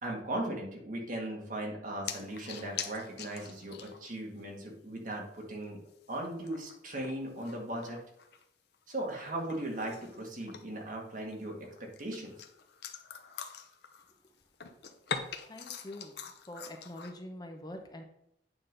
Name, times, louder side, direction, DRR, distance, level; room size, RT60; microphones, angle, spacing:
voice 1, 0.0-5.8 6.1-8.0 8.9-12.4, right 1 dB, 45° right, 0 dB, 1.8 m, -38 dB
sound 1, 2.1-4.2 4.5-4.6 5.0-5.1 5.7-8.4 8.7-10.9 11.3-14.3 14.5-17.1, left 6 dB, 65° left, 0.8 m, -44 dB
voice 2, 15.5-16.2 16.5-18.0, left 1 dB, 20° left, 4 dB, 0.8 m, -44 dB
8.9 x 3.8 x 5.3 m, 0.74 s
head